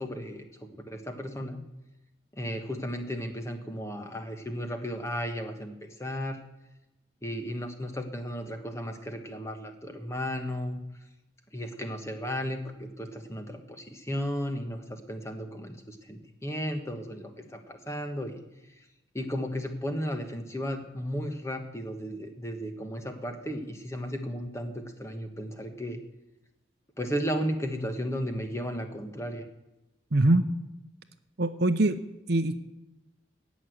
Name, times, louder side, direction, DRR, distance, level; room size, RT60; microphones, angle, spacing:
voice 1, 0.0-1.6 2.3-5.7 6.0-6.4 7.2-10.8 11.5-18.4 18.7-18.8 19.1-26.0 27.0-29.4, equal, 15° left, 6 dB, 1.3 m, -34 dB
voice 2, 30.1-30.5 31.4-32.0 32.3-32.6, right 2 dB, 55° right, 10 dB, 0.8 m, -23 dB
17.5 x 6.3 x 7.9 m, 0.98 s
head